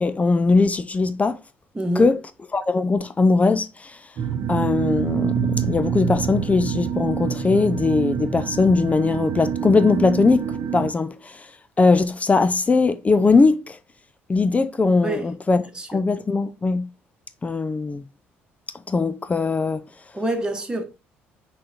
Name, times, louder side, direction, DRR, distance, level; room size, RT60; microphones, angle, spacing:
voice 1, 0.0-1.4 2.0-2.2 2.5-4.0 4.5-11.5 11.8-13.8 14.3-15.6 15.9-16.9 17.4-18.0 18.9-19.8, left 3 dB, 25° left, 0.5 m, -20 dB
voice 2, 1.7-2.1 15.0-15.3 15.7-16.0 20.1-20.8, right 1 dB, 15° right, 1.4 m, -26 dB
sound 1, 4.2-10.9, right 8 dB, 50° right, 0.9 m, -26 dB
6.2 x 4.0 x 4.3 m
figure-of-eight pair, 50°, 6 cm